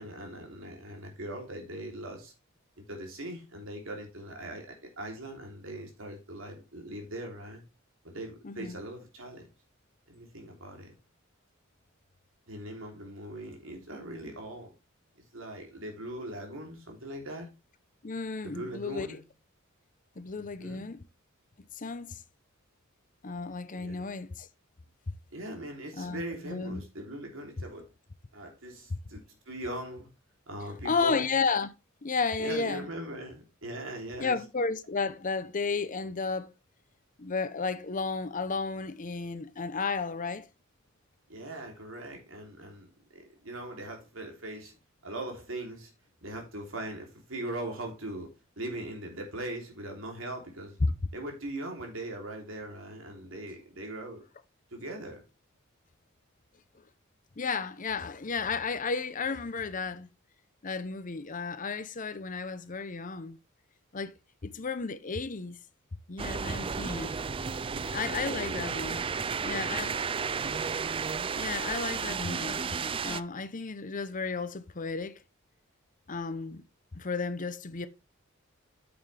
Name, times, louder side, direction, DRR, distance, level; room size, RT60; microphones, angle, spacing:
voice 1, 0.0-2.3 2.9-7.6 8.0-9.5 10.1-10.9 12.5-14.7 15.3-17.5 18.4-19.2 20.3-20.9 23.7-24.0 25.3-27.9 28.3-30.1 30.5-31.3 32.4-34.4 41.3-42.9 43.1-44.7 45.0-45.9 46.2-50.8 51.1-54.2 54.7-55.2 67.7-68.7 69.2-70.1, right 1 dB, 70° right, 3.2 m, -40 dB
voice 2, 8.4-8.8 18.0-19.2 20.2-21.0 21.8-22.2 23.2-24.5 26.0-26.8 28.9-29.0 30.8-31.7 32.0-32.9 34.2-36.5 37.2-40.5 50.8-50.9 57.4-60.1 60.6-63.4 63.9-64.1 64.4-65.6 66.1-67.1 67.9-69.0 69.4-69.9 71.4-72.6 73.0-75.2 76.1-76.6 76.9-77.9, left 4 dB, 40° left, 0.8 m, -33 dB
sound 1, 66.2-73.2, right 5 dB, 25° right, 0.4 m, -33 dB
9.4 x 7.0 x 3.4 m
head